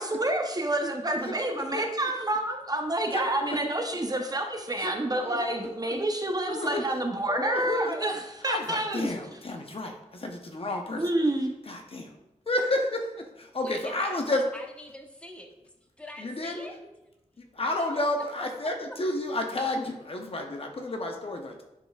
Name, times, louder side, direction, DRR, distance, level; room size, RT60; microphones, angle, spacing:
voice 1, 0.0-9.1 11.0-11.5, right 1 dB, 30° right, 3 dB, 0.6 m, -28 dB
voice 2, 1.2-1.8 3.1-3.6 4.8-6.0 6.4-6.8 7.3-8.0 8.4-11.0 11.7-12.1 12.5-14.4 16.2-16.7 17.4-21.6, left 2 dB, 50° left, 3 dB, 0.8 m, -31 dB
voice 3, 13.6-15.5 16.0-16.8 17.9-18.0 18.6-18.7, left 1 dB, 10° left, 1 dB, 0.9 m, -42 dB
10.5 x 4.1 x 2.3 m, 0.95 s
wide cardioid pair, 90°, 13 cm